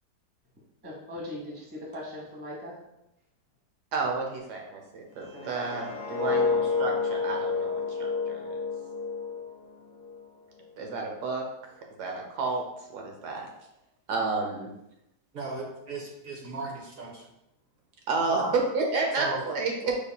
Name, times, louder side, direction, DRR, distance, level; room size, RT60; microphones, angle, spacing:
voice 1, 0.8-2.8 5.3-5.7, left 1 dB, 10° right, -3 dB, 0.8 m, -39 dB
voice 2, 3.9-8.6 10.8-11.4 12.0-12.6 12.9-13.5 14.1-14.7 18.1-20.0, right 3 dB, 75° right, 1 dB, 1.3 m, -30 dB
sound 1, 5.2-10.2 10.6-10.9, left 4 dB, 40° left, 0.7 m, -30 dB
voice 3, 15.3-17.2 18.3-18.5 19.2-19.4, right 3 dB, 55° right, -1 dB, 1.3 m, -36 dB
5.3 x 4.2 x 2.2 m, 0.84 s
omnidirectional pair, 1.8 m